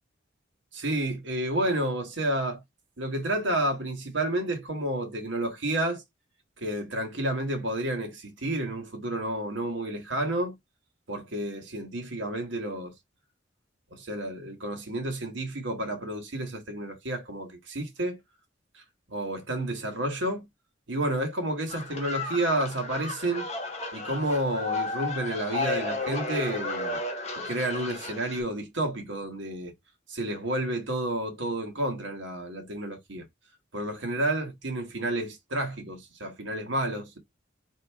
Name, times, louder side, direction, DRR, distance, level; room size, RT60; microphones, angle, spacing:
voice 1, 0.7-2.6 3.0-6.0 6.6-10.6 11.1-12.9 13.9-18.2 18.7-18.8 19.1-20.5 20.9-23.5 23.9-27.0 27.4-29.7 30.1-33.3 33.7-37.2, right 1 dB, 70° right, 1.4 m, -30 dB
sound 1, 21.7-28.4, left 3 dB, 35° left, 1.3 m, -33 dB
5.4 x 2.7 x 3.5 m
head